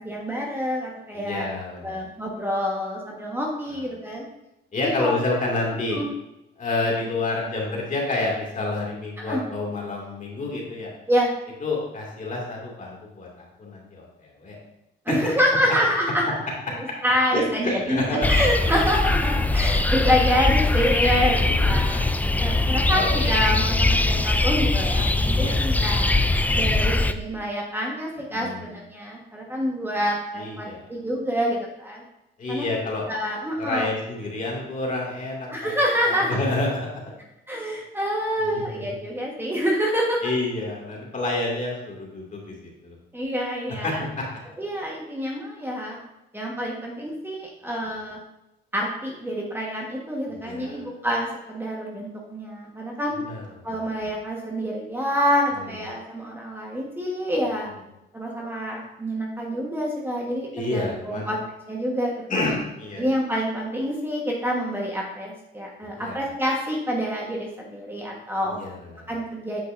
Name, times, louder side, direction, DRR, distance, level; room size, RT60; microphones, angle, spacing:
voice 1, 0.0-1.5 1.8-4.2 4.8-5.1 5.9-6.1 9.2-9.4 11.1-11.3 15.0-16.3 17.0-22.0 22.4-26.2 26.5-32.0 32.5-32.7 33.1-33.9 35.5-36.4 37.5-40.3 43.1-44.0 44.6-46.0 46.3-48.2 48.7-53.2 53.6-57.7 58.1-61.4 61.7-62.5 63.0-68.6 69.1-69.6, equal, 10° right, -2 dB, 1.3 m, -27 dB
voice 2, 1.1-2.0 4.7-6.0 6.6-10.9 11.6-14.1 14.4-14.6 17.3-18.3 21.3-22.0 22.6-23.3 25.3-25.6 28.3-28.7 30.4-30.8 32.4-33.1 33.6-35.7 36.1-37.0 37.5-37.6 38.4-38.8 40.2-42.5 42.8-42.9 43.8-44.2 50.3-50.8 53.2-53.7 55.6-55.7 60.5-61.3 62.3-63.0 66.0-66.2 68.4-69.0, left 2 dB, 40° left, -2 dB, 2.4 m, -29 dB
sound 1, 18.2-27.1, left 2 dB, 10° left, 0.4 m, -21 dB
8.2 x 6.0 x 2.6 m, 0.91 s
cardioid pair, 90°, 20 cm